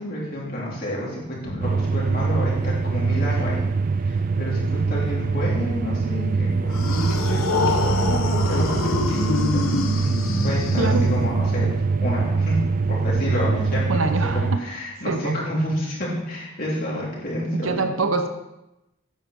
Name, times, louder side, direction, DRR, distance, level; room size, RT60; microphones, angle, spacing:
voice 1, 0.0-3.6 4.0-10.1 10.4-11.7 12.0-12.6 12.9-17.8, equal, 45° left, -5 dB, 3.8 m, -29 dB
sound 1, 1.6-14.6, right 4 dB, 40° right, 0.3 m, -23 dB
sound 2, 6.7-11.5, left 3 dB, 80° left, 1.1 m, -25 dB
voice 2, 10.8-11.1 13.9-14.6 15.1-15.4 17.5-18.3, right 3 dB, 75° right, 7 dB, 1.0 m, -24 dB
9.4 x 5.8 x 7.0 m, 0.93 s
head